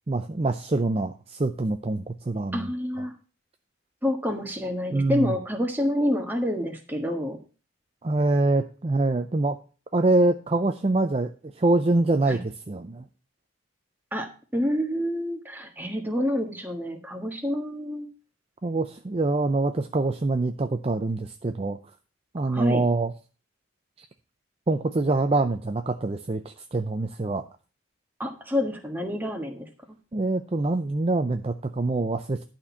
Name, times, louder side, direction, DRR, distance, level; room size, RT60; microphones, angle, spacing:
voice 1, 0.1-2.7 4.9-5.3 8.0-9.6 9.9-13.1 18.6-21.8 22.3-23.1 24.0-24.1 24.7-27.4 30.1-32.4, right 2 dB, 30° right, 7 dB, 0.5 m, -25 dB
voice 2, 2.5-3.1 4.0-7.4 12.3-12.4 14.1-18.1 22.4-22.8 28.2-29.7, left 1 dB, 10° right, 3 dB, 1.5 m, -28 dB
11.5 x 4.4 x 7.0 m, 0.36 s
head